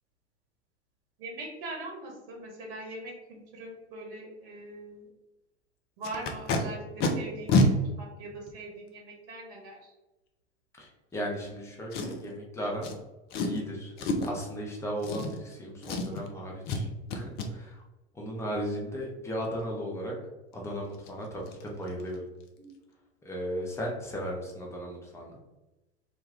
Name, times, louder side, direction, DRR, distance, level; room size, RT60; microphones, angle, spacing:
voice 1, 1.2-5.1 6.0-9.8 22.6-22.7, right 2 dB, 55° right, 0 dB, 1.0 m, -42 dB
Packing tape duct tape, 6.0-6.6 7.0-7.1 7.5-7.7 8.5-8.6 11.9-12.3 12.8-12.9 13.3-13.6 14.0-14.4 15.0-15.6 15.8-16.3 16.7-16.8 17.1-17.5 20.5-20.6 20.9-21.1 21.5-21.6 21.9-22.1 22.4-22.5, left 2 dB, 30° left, 0.4 m, -27 dB
voice 2, 10.8-12.9 13.4-13.9 14.3-17.8 18.1-20.1 20.5-22.2 23.2-25.4, equal, 10° left, -2 dB, 0.7 m, -36 dB
2.5 x 2.2 x 3.4 m, 1.0 s
figure-of-eight pair, 80°, 34 cm